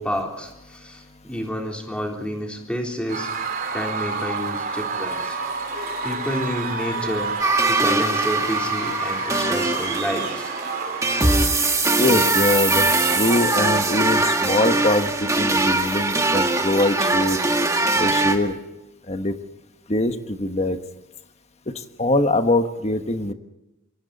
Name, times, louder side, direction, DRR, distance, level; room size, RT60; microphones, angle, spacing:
voice 1, 0.0-3.3 3.7-5.4 6.0-7.3 7.7-10.5, equal, 5° left, 1 dB, 3.7 m, -29 dB
Screaming / Cheering / Crowd, 3.1-11.7, right 4 dB, 40° right, 2.9 m, -29 dB
sound 1, 7.4-18.4, right 2 dB, 15° right, 1.7 m, -21 dB
voice 2, 12.0-12.9 13.2-17.4 17.9-18.6 19.1-19.3 19.9-20.8 22.0-23.3, left 1 dB, 30° left, 7 dB, 1.4 m, -22 dB
27.5 x 23.5 x 4.2 m, 0.96 s
head